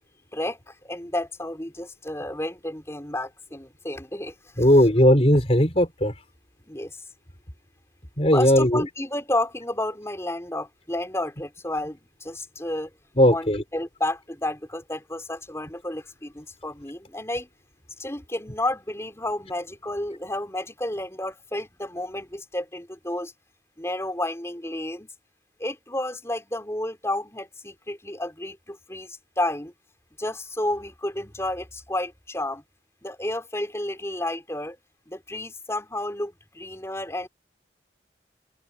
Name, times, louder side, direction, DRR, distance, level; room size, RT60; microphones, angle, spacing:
voice 1, 0.3-4.3 6.7-7.0 8.3-12.9 13.3-13.5 13.7-17.5 18.0-23.3 23.8-25.1 25.6-29.7 30.2-32.6 33.0-34.8 35.1-37.3, left 1 dB, 15° left, 5.3 m, -31 dB
voice 2, 4.6-6.1 8.2-8.8 13.2-13.6, equal, 35° left, 5.6 m, -18 dB
open air
head